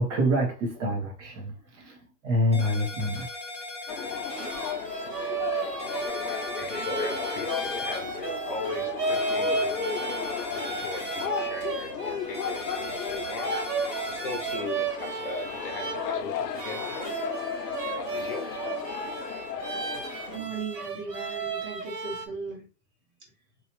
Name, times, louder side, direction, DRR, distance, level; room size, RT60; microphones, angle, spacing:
voice 1, 0.0-1.5 1.8-2.0 2.2-3.3, equal, 50° right, 1.5 m, -26 dB
sound 1, 2.5-4.7 5.8-8.0 9.1-11.3 12.3-14.5, left 2 dB, 5° right, 0.5 m, -39 dB
sound 2, 3.9-20.4, left 6 dB, 90° left, 0.8 m, -34 dB
sound 3, 4.1-22.3, right 4 dB, 75° right, 1.4 m, -34 dB
voice 2, 6.5-9.7 10.4-13.5 14.1-17.1 17.9-18.5, left 3 dB, 35° left, 0.8 m, -38 dB
voice 3, 20.3-22.7, right 4 dB, 20° right, 1.5 m, -37 dB
3.1 x 3.1 x 3.0 m
hypercardioid pair, 145°, 48 cm